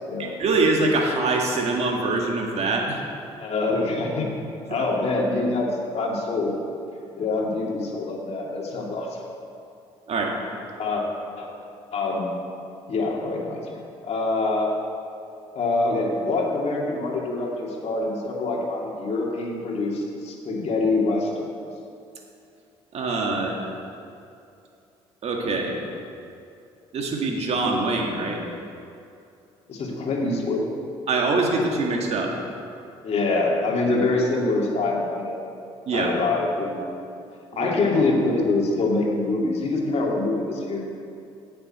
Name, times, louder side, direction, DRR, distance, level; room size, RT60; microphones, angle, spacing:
voice 1, 0.2-3.0 4.7-4.8 10.1-10.4 22.9-23.6 25.2-25.8 26.9-28.4 31.1-32.3 35.9-36.1 37.5-37.7, right 3 dB, 55° right, 1 dB, 1.9 m, -24 dB
voice 2, 3.4-4.3 4.7-5.7 5.9-6.5 7.2-9.1 10.8-11.0 11.4-11.5 11.9-12.4 12.9-14.7 15.5-21.5 29.7-30.6 33.0-35.4 35.9-36.9 37.6-40.8, left 3 dB, 55° left, -2 dB, 2.4 m, -25 dB
16.0 x 6.9 x 4.3 m, 2.6 s
hypercardioid pair, 60°, 13 cm